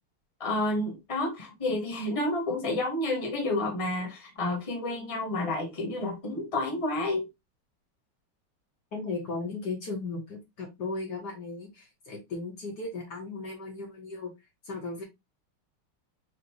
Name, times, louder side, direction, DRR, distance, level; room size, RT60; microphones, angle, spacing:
voice 1, 0.4-7.3, left 2 dB, 15° left, 1.4 m, -30 dB
voice 2, 8.9-14.3 14.6-15.0, left 3 dB, 55° left, 1.7 m, -36 dB
5.1 x 2.9 x 2.9 m
omnidirectional pair, 2.4 m